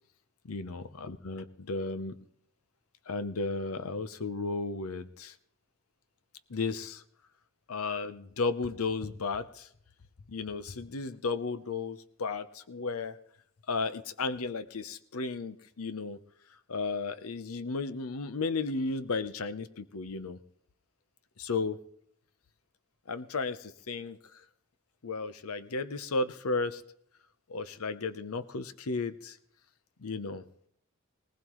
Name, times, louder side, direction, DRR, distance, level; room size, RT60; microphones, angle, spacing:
voice 1, 0.4-2.1 3.1-5.4 6.5-7.0 7.7-9.7 10.3-13.2 13.7-16.2 16.7-20.4 21.4-21.8 23.1-24.4 25.0-26.8 27.5-29.4 30.0-30.4, left 3 dB, 80° left, 12 dB, 0.8 m, -34 dB
19.0 x 19.0 x 3.1 m, 0.67 s
head